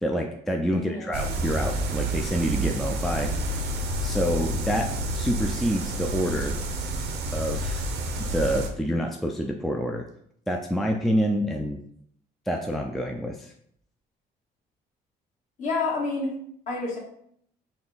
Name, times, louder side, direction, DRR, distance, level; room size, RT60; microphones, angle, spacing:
voice 1, 0.0-3.3 4.0-4.9 5.1-6.6 7.3-7.8 8.2-10.1 10.5-11.8 12.5-13.5, equal, ahead, 2 dB, 0.3 m, -27 dB
voice 2, 0.7-1.1 15.6-16.3 16.7-17.0, left 3 dB, 45° left, -3 dB, 1.5 m, -28 dB
sound 1, 1.1-8.7, right 1 dB, 85° right, 0.6 m, -29 dB
3.7 x 2.3 x 3.9 m, 0.68 s
cardioid pair, 110°, 17 cm